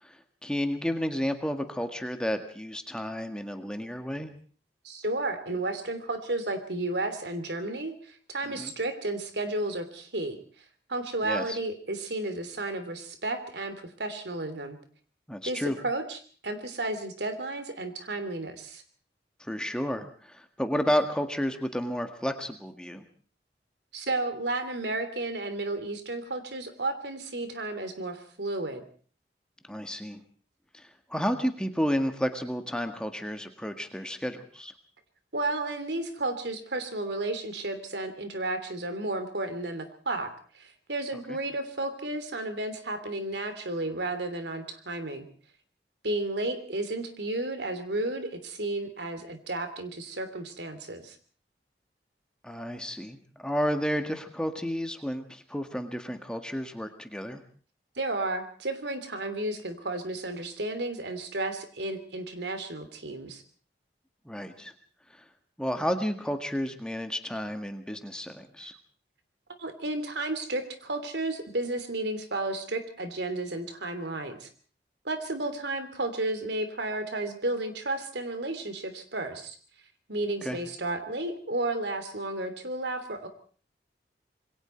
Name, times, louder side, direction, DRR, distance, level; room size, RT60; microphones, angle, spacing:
voice 1, 0.0-4.3 8.4-8.7 11.2-11.6 15.3-15.8 19.4-23.1 29.7-30.2 30.7-34.7 41.3-41.4 52.4-57.4 64.3-64.7 65.1-65.2 65.6-68.7 80.4-80.6, equal, 5° left, 6 dB, 1.8 m, -31 dB
voice 2, 4.8-10.4 10.9-14.8 15.4-16.2 16.4-18.8 20.7-20.9 23.9-28.8 35.3-45.3 46.0-51.1 58.0-63.4 69.6-74.5 75.0-79.6 80.1-83.3, right 2 dB, 80° right, 9 dB, 3.2 m, -32 dB
27.0 x 22.0 x 4.5 m, 0.44 s
head